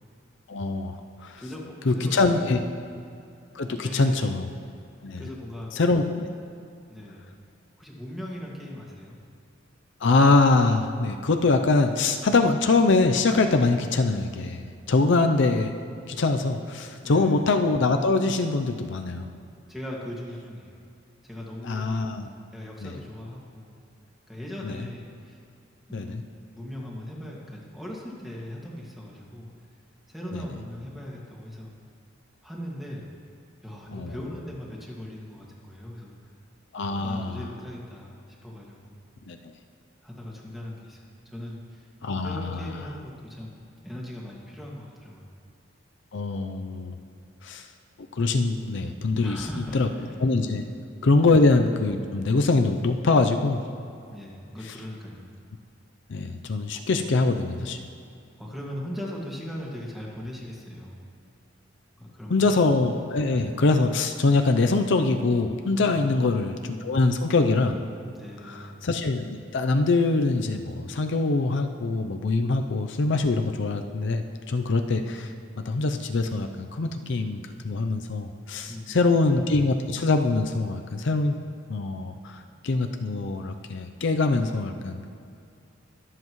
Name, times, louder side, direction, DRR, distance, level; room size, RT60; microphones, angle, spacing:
voice 1, 0.5-1.4 1.9-2.6 3.5-4.5 5.0-5.2 5.7-6.3 10.0-15.7 16.1-19.3 21.6-22.3 22.8-22.9 24.6-24.8 25.9-26.2 30.3-30.4 33.9-34.1 36.7-37.4 39.3-39.4 42.0-42.7 46.1-47.0 47.4-47.7 48.1-49.5 49.7-49.9 50.2-50.6 51.0-53.6 56.1-57.8 62.3-67.8 68.4-75.3 75.6-81.4 81.7-85.1, left 3 dB, 65° left, 6 dB, 0.6 m, -23 dB
voice 2, 1.4-2.5 2.7-2.9 3.7-4.3 5.2-5.7 6.9-7.2 7.8-9.2 17.0-17.4 19.7-20.8 21.2-22.0 22.5-23.7 24.3-25.4 25.9-29.5 30.1-31.7 32.4-33.0 33.6-36.3 37.0-39.0 40.0-41.0 41.3-41.9 42.2-45.3 47.0-47.4 49.2-50.2 50.6-50.7 51.2-51.3 54.1-55.3 56.7-57.2 58.3-61.0 62.0-62.6 68.1-68.8 78.7-79.2, left 1 dB, ahead, -4 dB, 2.0 m, -39 dB
22.5 x 7.7 x 3.1 m, 2.4 s
head